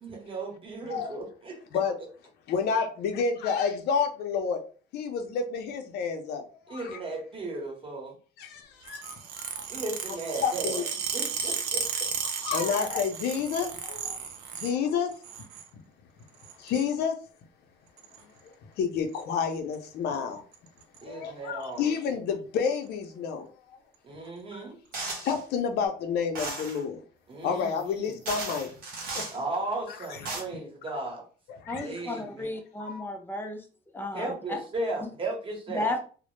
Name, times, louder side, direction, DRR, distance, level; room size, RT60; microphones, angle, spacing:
voice 1, 0.0-1.6 6.7-8.2 9.7-10.8 11.1-11.8 21.0-21.9 24.0-24.8 27.3-28.2 29.3-31.2 31.8-32.5 34.1-35.9, right 2 dB, 30° right, 0 dB, 0.9 m, -35 dB
voice 2, 2.5-4.6 4.9-7.0 8.4-9.6 10.4-10.8 12.4-14.2 14.5-15.1 16.6-17.2 18.8-20.4 21.0-23.5 25.0-27.0 27.4-28.7 29.1-29.2 31.6-31.9 32.8-33.0, left 6 dB, 75° left, 6 dB, 0.5 m, -29 dB
sound 1, 8.8-14.8 15.1-15.7 16.4-16.9 18.0-18.2 19.2-19.4 19.7-19.9 20.1-20.2 20.5-21.0 21.6-21.7 22.6-22.8, right 6 dB, 85° right, 0.5 m, -34 dB
sound 2, 24.9-25.4 26.3-26.8 27.8-27.9 28.3-29.4 30.0-30.4, right 3 dB, 60° right, 0.8 m, -35 dB
voice 3, 31.7-33.6 33.9-34.6 35.0-35.1 35.7-36.0, left 2 dB, 15° left, 4 dB, 0.5 m, -33 dB
2.0 x 2.0 x 3.0 m, 0.39 s
cardioid pair, 110°, 17 cm